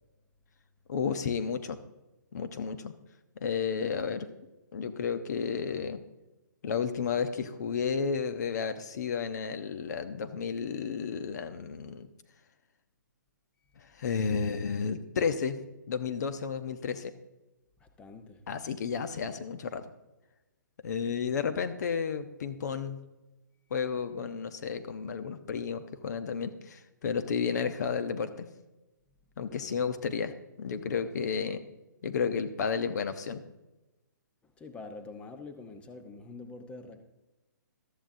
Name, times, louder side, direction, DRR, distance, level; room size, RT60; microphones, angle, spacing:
voice 1, 0.9-1.8 2.3-2.9 3.4-4.3 4.7-6.0 6.6-12.1 14.0-15.6 15.9-17.1 18.5-19.8 20.8-23.0 23.7-28.5 29.4-31.6 32.0-33.4, left 6 dB, 60° left, 0.9 m, -32 dB
voice 2, 17.8-18.4 29.5-29.7 34.4-37.0, left 3 dB, 10° left, 0.9 m, -46 dB
14.0 x 13.0 x 2.7 m
hypercardioid pair, 145°, 11 cm